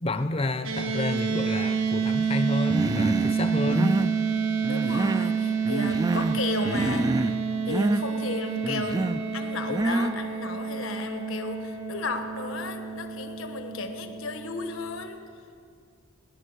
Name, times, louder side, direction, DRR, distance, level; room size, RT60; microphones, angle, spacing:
voice 1, 0.0-4.0, left 1 dB, 30° left, 10 dB, 0.7 m, -29 dB
sound 1, 0.6-15.0, right 6 dB, 85° right, 1.6 m, -29 dB
Human voice, 2.7-3.4 3.7-4.2 4.6-5.4 5.7-6.4 6.7-7.4 7.7-8.0 8.6-9.2 9.7-10.2, right 2 dB, 20° right, 0.3 m, -27 dB
voice 2, 4.7-7.3 7.7-9.1 9.3-15.2, left 3 dB, 75° left, 6 dB, 1.3 m, -34 dB
19.5 x 11.0 x 6.6 m, 2.3 s
head